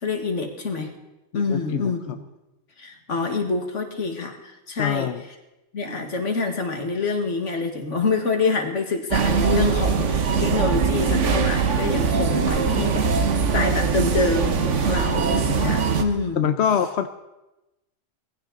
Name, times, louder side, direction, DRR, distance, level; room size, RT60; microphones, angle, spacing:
voice 1, 0.0-0.9 1.3-2.2 2.8-5.1 5.7-13.1 13.5-16.5, left 3 dB, 90° left, 4 dB, 2.1 m, -26 dB
voice 2, 1.3-1.9 4.8-5.2 16.4-17.1, left 8 dB, 70° left, 9 dB, 1.0 m, -24 dB
sound 1, 9.1-16.0, right 5 dB, 85° right, 1.4 m, -21 dB
19.5 x 15.5 x 3.9 m, 0.99 s
omnidirectional pair, 1.2 m